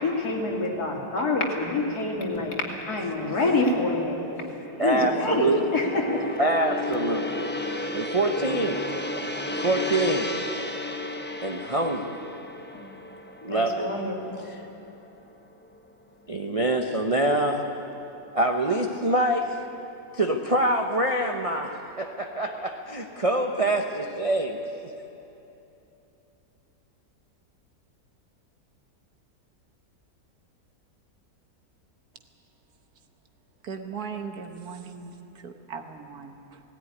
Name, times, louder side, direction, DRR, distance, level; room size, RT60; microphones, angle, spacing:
voice 1, 0.0-4.2 4.8-6.3 12.7-12.9 13.4-14.5, left 2 dB, 65° left, -1 dB, 3.1 m, -27 dB
Gong, 2.9-15.3 15.6-15.9, left 2 dB, 10° left, 0.6 m, -34 dB
voice 2, 4.8-5.6 6.4-7.5 7.9-8.8 9.6-10.3 11.4-12.2 13.4-13.9 16.3-17.7 18.3-19.6 20.1-24.6, right 1 dB, 30° right, 2 dB, 0.7 m, -25 dB
voice 3, 33.6-36.6, right 5 dB, 65° right, 6 dB, 1.7 m, -38 dB
18.0 x 17.0 x 9.8 m, 3.0 s
omnidirectional pair, 1.8 m